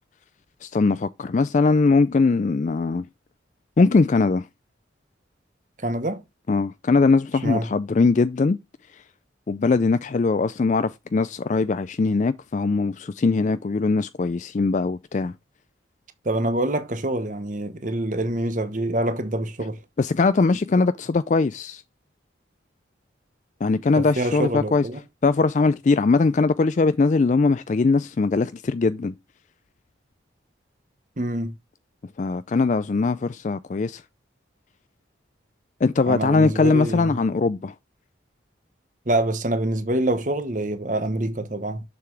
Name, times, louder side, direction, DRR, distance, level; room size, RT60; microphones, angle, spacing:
voice 1, 0.6-3.1 3.8-4.5 6.5-8.6 8.9-9.0 9.5-15.3 20.0-21.8 23.6-24.8 25.2-29.1 32.2-34.0 35.8-37.7, left 3 dB, 40° left, 0.3 m, -21 dB
voice 2, 5.8-6.2 7.4-7.7 16.2-19.8 24.0-25.0 31.2-31.5 36.1-37.1 39.1-41.8, right 1 dB, 40° right, 1.0 m, -26 dB
7.0 x 6.7 x 3.1 m
head